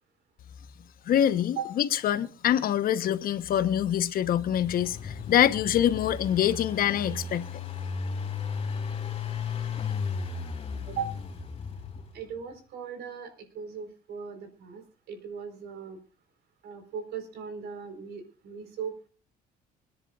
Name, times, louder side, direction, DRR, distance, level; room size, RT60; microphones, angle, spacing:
voice 1, 1.1-7.4, left 10 dB, 60° left, 1.1 m, -25 dB
Engine, 4.3-12.3, left 5 dB, 35° left, 3.0 m, -35 dB
voice 2, 12.1-16.0 16.6-19.1, right 6 dB, 75° right, 4.5 m, -38 dB
26.0 x 10.5 x 2.5 m
cardioid pair, 110°, 17 cm